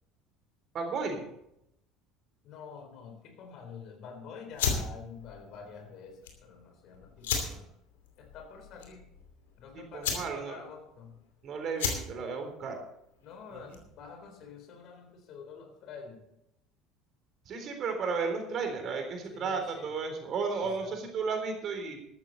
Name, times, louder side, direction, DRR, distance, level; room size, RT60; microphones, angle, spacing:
voice 1, 0.7-1.2 9.7-10.6 11.4-12.8 17.5-22.0, right 5 dB, 45° right, 5 dB, 3.7 m, -33 dB
voice 2, 2.4-7.7 8.2-9.1 9.6-11.2 13.2-16.2 19.3-19.9 20.6-21.0, left 6 dB, 50° left, 5 dB, 4.0 m, -47 dB
sound 1, 4.5-14.0, left 6 dB, 70° left, 2.7 m, -36 dB
14.0 x 13.0 x 4.2 m, 0.79 s
figure-of-eight pair, 65°, 0 cm